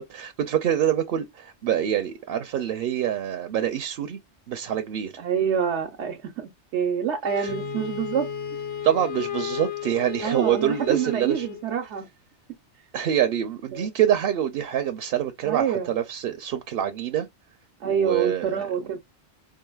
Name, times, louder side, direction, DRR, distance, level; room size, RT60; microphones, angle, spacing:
voice 1, 0.0-4.2 4.5-5.1 7.4-7.5 8.8-11.5 12.9-17.3 17.8-18.7, right 10 dB, 65° right, 0.7 m, -25 dB
voice 2, 5.2-8.3 10.2-12.1 13.7-13.9 15.4-15.9 17.8-19.0, right 8 dB, 90° right, 1.0 m, -26 dB
Wind instrument woodwind instrument, 7.2-11.7, left 11 dB, 40° left, 0.6 m, -34 dB
sound 1, 7.5-11.2, right 13 dB, 70° left, 1.7 m, -44 dB
4.7 x 2.5 x 2.2 m
omnidirectional pair, 1.1 m